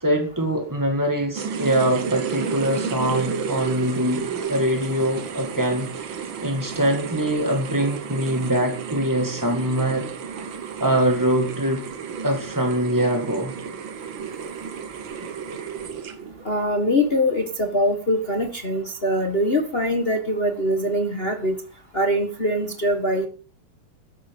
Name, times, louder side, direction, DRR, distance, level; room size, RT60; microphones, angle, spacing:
voice 1, 0.0-10.1 10.8-11.8 12.2-13.5, right 1 dB, 10° right, 3 dB, 1.1 m, -23 dB
sound 1, 1.3-16.4, right 6 dB, 60° right, 1.3 m, -32 dB
voice 2, 16.4-21.6 21.9-23.3, equal, 50° left, 5 dB, 0.6 m, -23 dB
13.5 x 11.0 x 5.4 m, 0.37 s
omnidirectional pair, 4.0 m